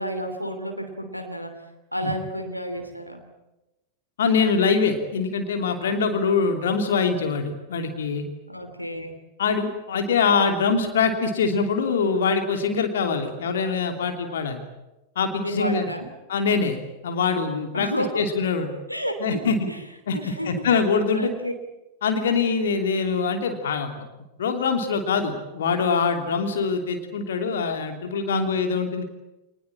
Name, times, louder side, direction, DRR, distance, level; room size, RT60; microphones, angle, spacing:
voice 1, 0.0-3.3 6.2-6.3 8.5-9.2 15.4-16.1 17.7-18.2 18.9-19.8 20.1-20.6 21.1-21.5 28.3-28.6, equal, 90° left, 6 dB, 3.0 m, -31 dB
voice 2, 4.2-8.3 9.4-14.6 15.1-15.9 16.3-16.8 17.0-17.9 18.1-18.7 19.2-19.6 20.1-20.2 20.4-21.3 22.0-24.1 24.4-29.0, left 5 dB, 60° left, 5 dB, 2.9 m, -23 dB
26.5 x 20.0 x 8.8 m, 1.0 s
figure-of-eight pair, 90°, 0 cm